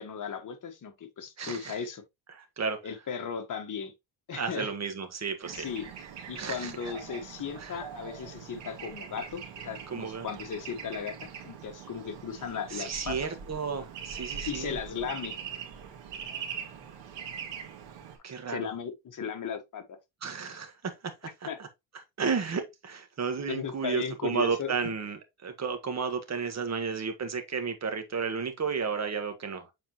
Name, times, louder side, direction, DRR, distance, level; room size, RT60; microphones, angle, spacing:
voice 1, 0.0-2.0 2.8-3.9 4.3-4.7 5.5-5.9 6.3-13.2 14.5-15.4 18.5-20.0 21.2-21.6 23.5-24.7, left 7 dB, 45° left, 1.5 m, -36 dB
voice 2, 1.4-1.8 2.3-2.8 4.3-5.7 6.4-6.7 7.6-7.8 9.9-10.3 12.7-14.8 18.2-18.7 20.2-20.9 21.4-21.7 22.2-29.7, right 5 dB, 35° right, 1.6 m, -33 dB
Bird / Traffic noise roadway noise, 5.4-18.2, right 7 dB, 75° right, 2.1 m, -42 dB
7.4 x 4.3 x 2.9 m
cardioid pair, 110°, 44 cm